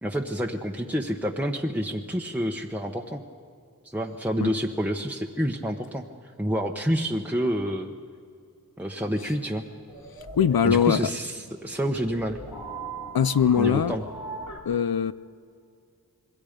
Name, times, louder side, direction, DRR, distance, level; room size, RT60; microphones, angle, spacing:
voice 1, 0.0-3.2 3.8-6.0 6.4-7.9 8.8-9.6 10.6-12.4 13.6-14.0, equal, 5° right, 1.0 m, -28 dB
sound 1, 9.8-14.6, right 2 dB, 60° left, 3.2 m, -39 dB
voice 2, 10.4-11.0 13.1-14.0 14.7-15.1, left 8 dB, 80° left, 0.6 m, -21 dB
27.0 x 21.0 x 5.2 m
wide cardioid pair, 60°, 35 cm